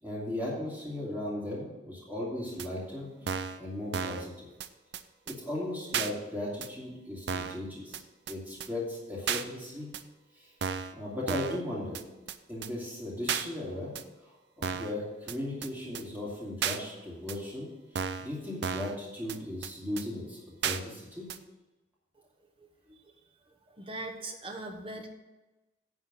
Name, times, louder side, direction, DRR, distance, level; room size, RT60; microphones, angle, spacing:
voice 1, 0.0-4.5 5.3-8.0 8.3-9.9 10.3-10.5 10.9-12.0 12.5-13.9 14.6-17.7 18.2-21.3, left 1 dB, 10° right, -7 dB, 2.7 m, -37 dB
sound 1, 2.6-2.7 3.3-3.6 3.9-4.3 4.6-4.7 4.9-5.0 5.3-5.4 5.9-6.1 6.6-6.7 7.3-7.6 7.9-8.0 8.3-8.4 8.6-8.7 9.3-9.4 9.9-10.0 10.6-10.9 11.3-11.6 11.9-12.0 12.3-12.4 12.6-12.7 13.3-13.5 14.0-14.1 14.6-14.9 15.3-15.4 15.6-15.7 16.0-16.1 16.6-16.8 17.3-17.4 18.0-18.3 18.6-19.0 19.3-19.4 19.6-19.7 20.0-20.1 20.6-20.8 21.3-21.4, right 7 dB, 65° right, 0.5 m, -33 dB
voice 2, 22.6-23.1 23.7-25.1, right 2 dB, 30° right, 3 dB, 1.1 m, -41 dB
9.9 x 4.4 x 7.7 m, 1.1 s
head